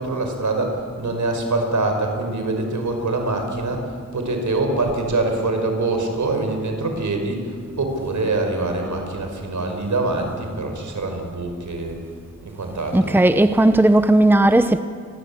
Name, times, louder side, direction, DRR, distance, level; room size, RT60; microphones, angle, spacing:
voice 1, 0.0-12.0 12.4-13.2, right 2 dB, 75° right, 5.4 m, -24 dB
voice 2, 12.9-14.8, right 1 dB, 5° right, 0.9 m, -15 dB
28.5 x 22.0 x 8.7 m
wide cardioid pair, 110°, 30 cm